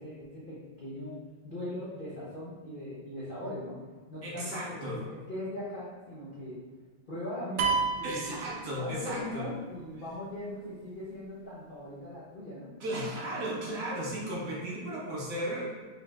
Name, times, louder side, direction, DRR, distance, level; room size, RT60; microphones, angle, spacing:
voice 1, 0.0-3.8 4.1-6.6 7.1-13.0, left 1 dB, 85° left, -9 dB, 0.4 m, -40 dB
voice 2, 4.2-5.0 8.0-9.4 12.8-15.7, right 1 dB, 50° right, -5 dB, 1.4 m, -35 dB
sound 1, 7.6-9.3, right 5 dB, 75° right, 1.1 m, -30 dB
5.2 x 4.0 x 2.3 m, 1.4 s
omnidirectional pair, 2.4 m